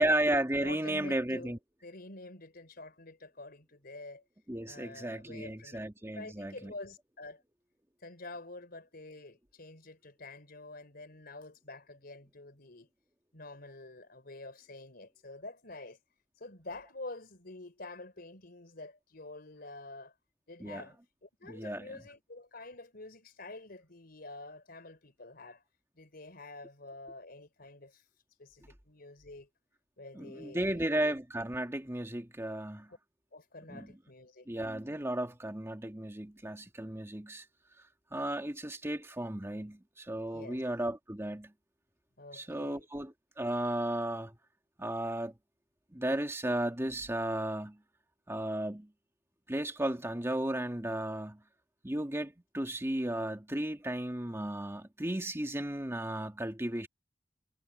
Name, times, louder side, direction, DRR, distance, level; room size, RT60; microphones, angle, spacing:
voice 1, 0.0-1.6 4.5-6.7 20.6-20.8 21.4-21.9 30.2-32.9 33.7-33.9 34.5-37.4 38.1-41.5 42.3-44.3 44.8-45.3 45.9-47.8 48.3-48.9 49.5-51.4 51.8-56.9, right 1 dB, 15° right, 1.9 m, -34 dB
voice 2, 0.6-1.5 1.8-4.2 4.7-5.8 6.1-7.4 8.0-12.9 13.3-16.0 16.4-20.1 20.5-25.6 25.9-28.0 28.4-29.5 30.0-30.8 32.9-33.0 33.3-34.5 40.3-40.6 42.2-42.8, left 2 dB, 55° left, 4.8 m, -48 dB
head